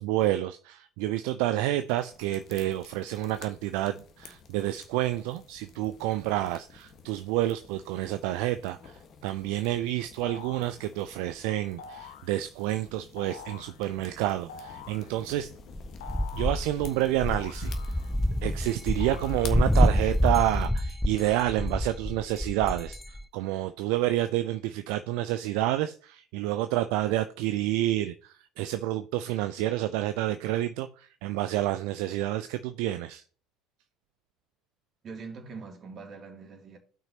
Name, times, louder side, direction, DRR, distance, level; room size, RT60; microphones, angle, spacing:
voice 1, 0.0-15.5 16.3-17.9 18.4-33.2, right 14 dB, 70° right, 0.4 m, -29 dB
sound 1, 1.8-20.7, left 5 dB, 50° left, 1.4 m, -50 dB
sound 2, 10.2-10.8 11.8-12.3 13.2-13.8 14.5-15.1 16.0-16.7 17.3-18.3 19.0-19.8, left 6 dB, 80° left, 0.7 m, -45 dB
sound 3, 15.7-23.2, left 1 dB, 5° left, 0.4 m, -27 dB
voice 2, 35.0-36.8, right 4 dB, 45° right, 2.7 m, -43 dB
13.0 x 5.9 x 2.9 m
hypercardioid pair, 65°, 0 cm